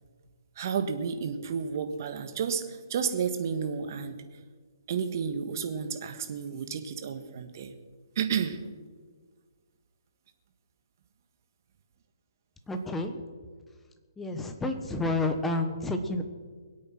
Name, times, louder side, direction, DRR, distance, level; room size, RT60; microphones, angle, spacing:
voice 1, 0.6-4.2 4.9-7.7 8.1-8.6, right 6 dB, 50° right, 7 dB, 1.6 m, -31 dB
voice 2, 12.7-13.2 14.2-16.2, left 2 dB, 10° left, 6 dB, 1.3 m, -30 dB
22.5 x 8.5 x 5.9 m, 1.5 s
hypercardioid pair, 145°, 2 cm